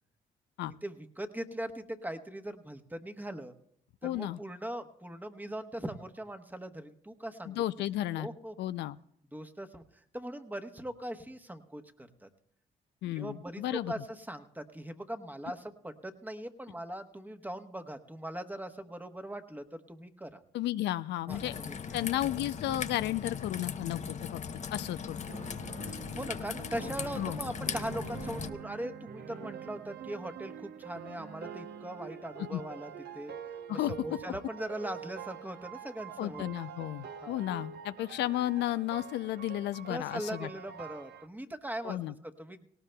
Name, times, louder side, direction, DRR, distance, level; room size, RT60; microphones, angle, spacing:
voice 1, 0.6-3.5 4.0-7.6 8.2-8.5 9.3-12.3 13.2-20.4 21.3-22.0 26.1-33.3 33.7-36.4 37.2-37.4 39.9-42.6, right 1 dB, 10° right, 8 dB, 1.1 m, -40 dB
voice 2, 4.0-4.4 7.5-8.3 8.6-9.0 13.0-13.9 20.5-21.5 21.9-24.4 24.7-25.2 27.1-27.4 32.5-32.6 33.7-33.9 36.2-40.5 41.8-42.1, left 14 dB, 80° left, 14 dB, 0.4 m, -33 dB
Raindrop / Trickle dribble, 21.3-28.5, left 6 dB, 40° left, 0.7 m, -39 dB
sound 1, 25.3-41.3, right 7 dB, 65° right, 0.8 m, -46 dB
18.0 x 18.0 x 2.3 m, 0.71 s
supercardioid pair, 70°, 18 cm